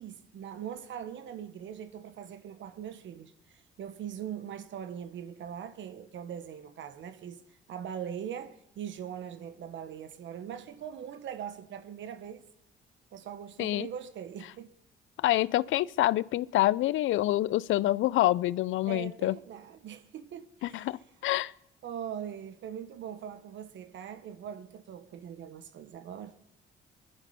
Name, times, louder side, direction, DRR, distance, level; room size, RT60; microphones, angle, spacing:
voice 1, 0.0-7.4 7.7-12.4 13.1-14.7 18.9-20.9 21.8-26.4, right 9 dB, 70° right, 1.1 m, -41 dB
voice 2, 15.2-19.4 20.6-21.5, left 15 dB, 80° left, 0.5 m, -27 dB
21.5 x 11.0 x 5.5 m
cardioid pair, 90°, 20 cm